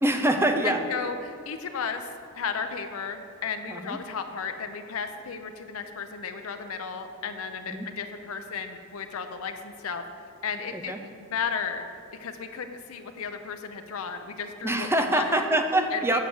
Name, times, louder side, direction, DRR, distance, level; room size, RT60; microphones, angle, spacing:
voice 1, 0.0-0.8 3.7-4.0 7.7-7.9 10.7-11.0 14.6-16.2, right 1 dB, 10° right, 6 dB, 0.5 m, -25 dB
voice 2, 0.6-2.1 2.3-10.0 10.4-11.9 12.2-15.5 15.9-16.2, left 6 dB, 85° left, 7 dB, 0.6 m, -34 dB
7.4 x 6.0 x 7.7 m, 2.4 s
head